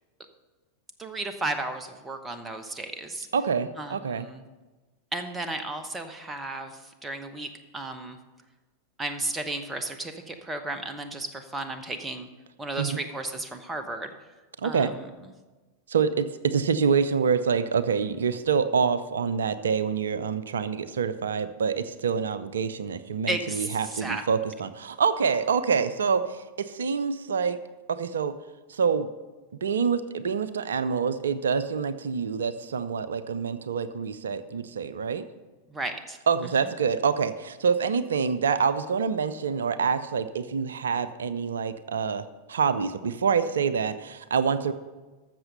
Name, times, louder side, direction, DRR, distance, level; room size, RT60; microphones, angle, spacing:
voice 1, 1.0-3.3 3.8-4.4 5.1-8.2 9.0-12.3 12.6-14.1 14.6-15.1 23.3-24.2 35.7-36.2, right 2 dB, 15° right, 8 dB, 1.0 m, -34 dB
voice 2, 3.3-4.3 12.8-13.0 14.6-14.9 15.9-27.6 27.9-28.3 28.7-29.1 29.6-35.2 36.3-44.7, right 6 dB, 65° right, 14 dB, 0.6 m, -26 dB
13.5 x 6.8 x 5.4 m, 1.2 s
figure-of-eight pair, 90°, 0 cm